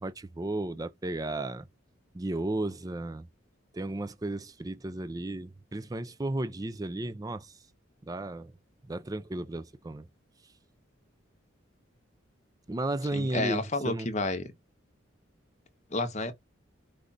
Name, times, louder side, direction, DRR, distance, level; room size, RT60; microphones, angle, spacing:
voice 1, 0.0-1.6 2.1-3.3 3.7-7.6 8.0-8.5 8.9-10.1 12.7-14.1, right 2 dB, 20° right, 0.4 m, -34 dB
voice 2, 13.1-14.5 15.9-16.3, left 2 dB, 35° left, 0.8 m, -30 dB
4.9 x 2.4 x 4.0 m
head